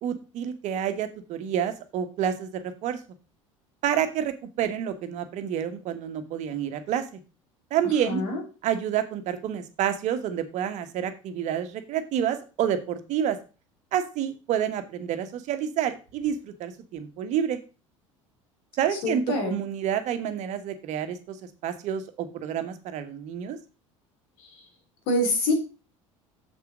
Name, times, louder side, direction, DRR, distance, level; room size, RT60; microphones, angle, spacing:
voice 1, 0.0-3.0 3.8-7.2 7.7-8.2 8.6-13.4 13.9-17.6 18.8-21.4 21.6-23.6, right 9 dB, 45° right, 9 dB, 1.4 m, -29 dB
voice 2, 8.1-8.4 19.0-19.6 25.1-25.5, left 1 dB, 55° left, 3 dB, 3.7 m, -25 dB
7.5 x 6.9 x 4.9 m, 0.32 s
figure-of-eight pair, 65°, 17 cm